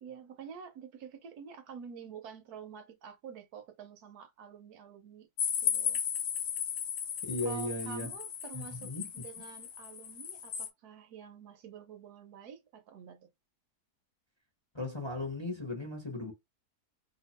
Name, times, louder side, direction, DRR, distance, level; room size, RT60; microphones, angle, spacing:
voice 1, 0.0-5.3 5.6-6.0 7.4-13.3, right 7 dB, 75° right, 1.2 m, -48 dB
sound 1, 5.4-10.7, left 8 dB, 70° left, 0.6 m, -35 dB
voice 2, 7.2-8.1 8.5-9.1 14.7-16.3, left 2 dB, 25° left, 0.8 m, -36 dB
2.9 x 2.4 x 4.2 m
omnidirectional pair, 1.7 m